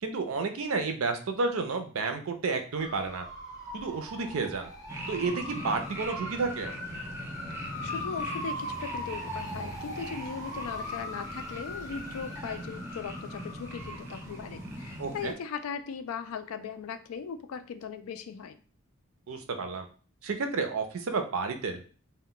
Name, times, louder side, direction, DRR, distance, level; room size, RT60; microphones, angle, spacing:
voice 1, 0.0-3.3 3.7-4.7 5.1-6.7 15.0-15.3 19.3-19.9 20.2-21.9, right 4 dB, 70° right, 7 dB, 0.5 m, -31 dB
sound 1, 2.8-15.3, left 1 dB, 15° left, 0.7 m, -40 dB
sound 2, 4.9-15.3, right 1 dB, 10° right, 0.4 m, -42 dB
voice 2, 7.8-18.6, left 6 dB, 75° left, 10 dB, 0.3 m, -38 dB
2.1 x 2.1 x 3.7 m, 0.39 s
head